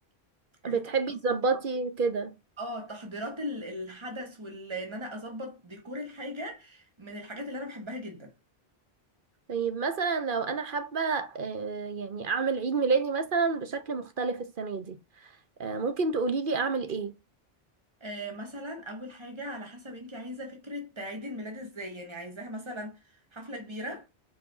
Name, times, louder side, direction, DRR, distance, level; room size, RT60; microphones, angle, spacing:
voice 1, 0.6-2.3 9.5-15.0 15.6-17.1, right 4 dB, 55° right, 1.1 m, -29 dB
voice 2, 2.6-8.3 18.0-24.1, equal, 25° right, 1.9 m, -39 dB
4.8 x 4.8 x 5.5 m
omnidirectional pair, 1.1 m